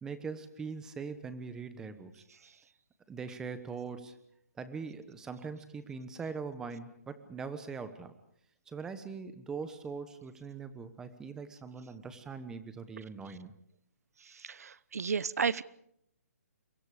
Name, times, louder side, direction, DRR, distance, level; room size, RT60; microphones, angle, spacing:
voice 1, 0.0-2.2 3.1-4.2 4.6-8.1 8.7-13.5, right 5 dB, 5° right, 11 dB, 1.1 m, -41 dB
voice 2, 14.4-15.6, right 6 dB, 70° right, 20 dB, 1.0 m, -32 dB
30.0 x 23.5 x 5.0 m, 0.72 s
hypercardioid pair, 165°, 9 cm